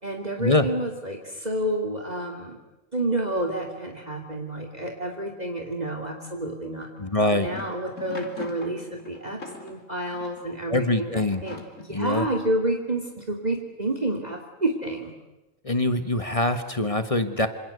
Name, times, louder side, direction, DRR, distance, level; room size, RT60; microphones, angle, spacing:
voice 1, 0.0-2.6 2.9-6.9 7.3-15.1, right 1 dB, 30° right, 3 dB, 2.8 m, -29 dB
sound 1, 7.0-10.5 11.3-12.1, left 3 dB, 70° left, 3.5 m, -42 dB
voice 2, 7.0-7.5 10.7-11.4 11.9-12.3 15.6-17.5, left 2 dB, 25° left, 10 dB, 1.5 m, -23 dB
27.0 x 26.5 x 8.1 m, 0.98 s
omnidirectional pair, 1.4 m